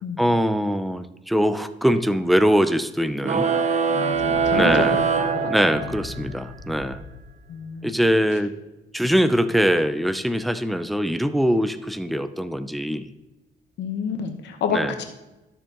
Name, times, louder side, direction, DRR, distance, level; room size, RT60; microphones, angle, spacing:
voice 1, 0.2-3.5 4.5-5.1 5.5-7.0 7.8-8.5 8.9-13.1 14.7-14.9, equal, ahead, 11 dB, 0.4 m, -22 dB
sound 1, 3.2-6.2, right 5 dB, 40° right, 0.7 m, -22 dB
voice 2, 3.9-4.9 5.3-5.8 7.5-8.0 13.8-15.0, left 6 dB, 90° left, 5 dB, 1.0 m, -29 dB
sound 2, 4.1-8.1, left 4 dB, 60° left, 2.5 m, -39 dB
13.0 x 6.7 x 2.9 m, 1.0 s
cardioid pair, 120°, 18 cm